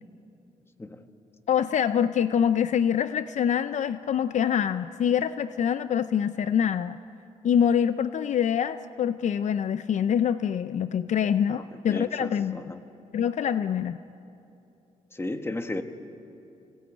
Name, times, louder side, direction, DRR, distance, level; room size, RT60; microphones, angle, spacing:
voice 1, 1.5-7.0 7.4-12.6 13.1-14.0, left 8 dB, 65° left, 12 dB, 0.5 m, -25 dB
voice 2, 11.5-12.8 15.1-15.8, left 2 dB, 20° left, 7 dB, 1.6 m, -34 dB
26.0 x 19.0 x 8.9 m, 2.7 s
cardioid pair, 90°, 13 cm